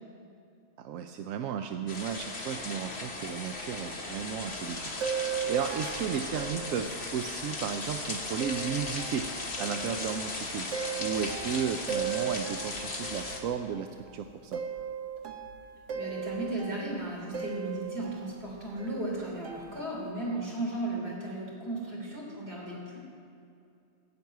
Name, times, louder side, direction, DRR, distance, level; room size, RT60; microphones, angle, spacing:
voice 1, 0.8-4.9 5.2-9.3 9.6-10.7 11.0-14.6, right 7 dB, 85° right, 6 dB, 1.0 m, -34 dB
sound 1, 1.9-13.4, left 2 dB, 50° left, 1.9 m, -37 dB
sound 2, 3.5-4.4 5.0-7.5 8.3-14.0 14.3-18.5 18.8-18.9 19.4-20.1, right 7 dB, 65° right, 1.3 m, -38 dB
voice 2, 15.9-23.0, right 1 dB, 50° right, -4 dB, 3.8 m, -35 dB
16.0 x 6.1 x 9.2 m, 2.5 s
omnidirectional pair, 1.4 m